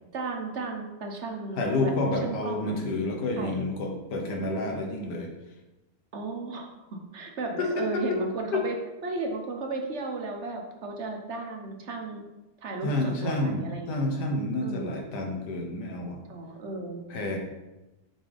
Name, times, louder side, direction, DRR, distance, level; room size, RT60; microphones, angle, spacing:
voice 1, 0.1-1.9 2.2-2.9 3.4-3.7 6.1-8.8 9.0-12.2 12.6-14.0 14.6-15.0 16.3-17.0, right 3 dB, 50° right, 2 dB, 1.0 m, -34 dB
voice 2, 1.6-5.3 7.6-8.2 8.5-8.6 12.8-16.2 17.1-17.4, left 2 dB, 75° left, 1 dB, 1.7 m, -29 dB
7.2 x 5.9 x 3.5 m, 1.0 s
omnidirectional pair, 1.8 m